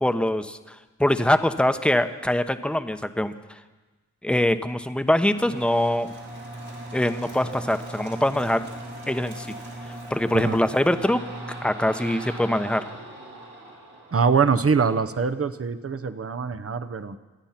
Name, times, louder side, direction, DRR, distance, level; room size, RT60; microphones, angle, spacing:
voice 1, 0.0-3.6 4.2-6.1 6.9-8.6 9.1-9.5 9.9-11.2 11.6-12.8, left 1 dB, 5° left, 9 dB, 1.0 m, -23 dB
sound 1, 5.3-14.9, right 1 dB, 85° right, 4.7 m, -39 dB
voice 2, 14.1-17.2, right 5 dB, 45° right, 11 dB, 0.9 m, -23 dB
26.5 x 9.0 x 5.9 m, 1.2 s
cardioid pair, 40°, 31 cm